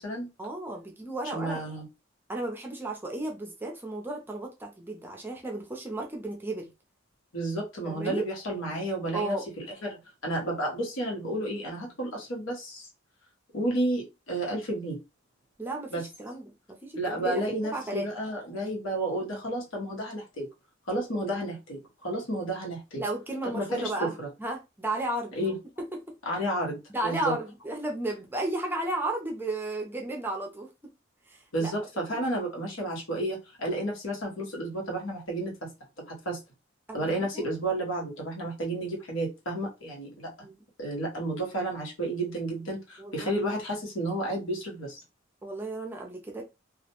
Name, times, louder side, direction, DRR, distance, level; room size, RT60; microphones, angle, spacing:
voice 1, 0.4-1.6 2.3-6.7 7.8-8.2 9.1-9.5 15.6-18.1 23.0-24.1 24.4-25.4 26.9-30.7 31.3-31.7 36.9-37.5 40.4-40.6 43.0-43.3 45.4-46.4, right 2 dB, 10° right, 0.4 m, -34 dB
voice 2, 1.3-1.9 7.3-12.9 13.5-15.0 15.9-16.1 16.9-20.5 20.9-23.0 23.4-24.3 25.3-25.6 26.2-27.4 31.5-35.7 36.1-36.4 36.9-40.3 40.8-45.0, right 1 dB, 90° left, 1.0 m, -31 dB
2.4 x 2.1 x 2.8 m
head